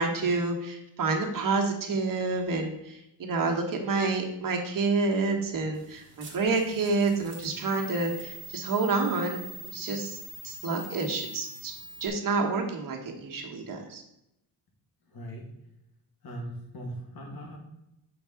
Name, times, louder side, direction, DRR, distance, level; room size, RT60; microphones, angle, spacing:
voice 1, 0.0-10.2 10.4-11.7 12.0-14.0, right 3 dB, 50° right, 2 dB, 1.4 m, -28 dB
sound 1, 5.7-12.1, right 1 dB, 30° right, 1.6 m, -44 dB
voice 2, 15.1-15.5 16.2-17.6, right 1 dB, 60° left, 1 dB, 2.1 m, -39 dB
6.3 x 4.6 x 5.8 m, 0.83 s
wide cardioid pair, 140°, 42 cm